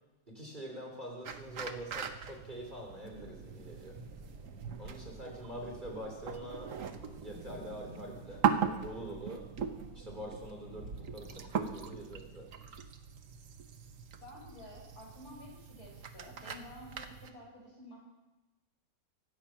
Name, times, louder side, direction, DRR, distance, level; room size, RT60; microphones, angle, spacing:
voice 1, 0.3-4.0 4.8-6.8 7.2-8.5 8.8-9.5 9.9-12.5, equal, 25° right, -1 dB, 3.4 m, -45 dB
sound 1, 1.2-17.3, right 7 dB, 55° right, 1.2 m, -40 dB
sound 2, 3.0-12.5, right 3 dB, 70° right, 2.2 m, -50 dB
voice 2, 14.2-18.0, left 1 dB, 60° left, -3 dB, 6.3 m, -51 dB
24.0 x 8.7 x 5.9 m, 1.0 s
omnidirectional pair, 1.9 m